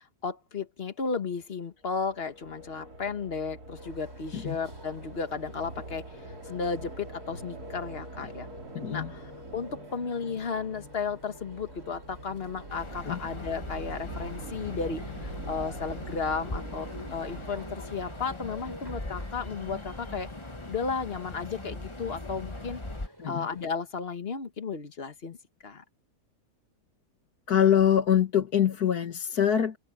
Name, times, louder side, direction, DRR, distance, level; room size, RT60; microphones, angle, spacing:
voice 1, 0.0-6.1 6.4-8.5 8.9-20.3 20.7-22.8 23.3-25.4 25.6-25.8, left 5 dB, 40° left, 1.6 m, -34 dB
sound 1, 1.9-18.9, right 2 dB, 75° right, 4.0 m, -44 dB
sound 2, 3.8-23.7, right 1 dB, 15° right, 7.2 m, -53 dB
voice 2, 8.7-9.1 13.1-13.2 23.2-23.5 27.5-29.8, left 9 dB, 75° left, 2.3 m, -24 dB
sound 3, 12.7-23.1, left 2 dB, 20° left, 1.4 m, -40 dB
open air
omnidirectional pair, 1.6 m